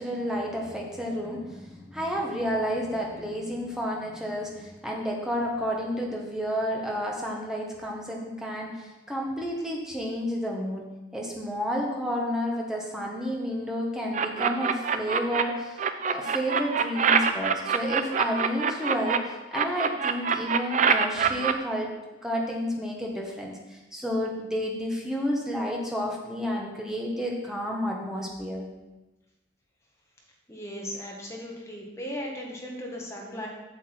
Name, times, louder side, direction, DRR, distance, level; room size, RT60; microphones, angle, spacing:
voice 1, 0.0-10.8 11.1-21.9 22.2-28.6, equal, 5° right, -2 dB, 1.3 m, -31 dB
sound 1, 14.1-15.4 15.8-19.2 19.5-21.5, right 6 dB, 35° right, 0.4 m, -24 dB
voice 2, 30.5-33.5, equal, 15° left, -2 dB, 1.4 m, -37 dB
8.0 x 7.1 x 4.5 m, 1.1 s
head